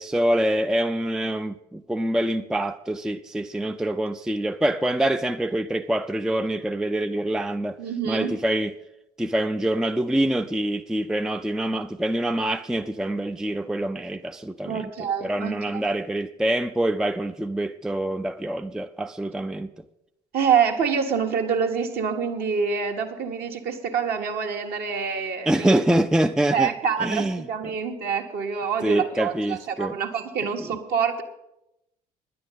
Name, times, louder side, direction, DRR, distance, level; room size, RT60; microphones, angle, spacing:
voice 1, 0.0-7.8 8.1-8.7 9.2-14.9 15.2-19.7 25.5-26.7 27.0-27.4 28.8-29.9 30.4-30.5, right 1 dB, 5° right, 0.4 m, -25 dB
voice 2, 7.8-8.3 14.6-15.8 20.3-25.8 26.5-31.2, right 6 dB, 50° right, 1.4 m, -26 dB
10.5 x 9.4 x 7.3 m
figure-of-eight pair, 50°, 20 cm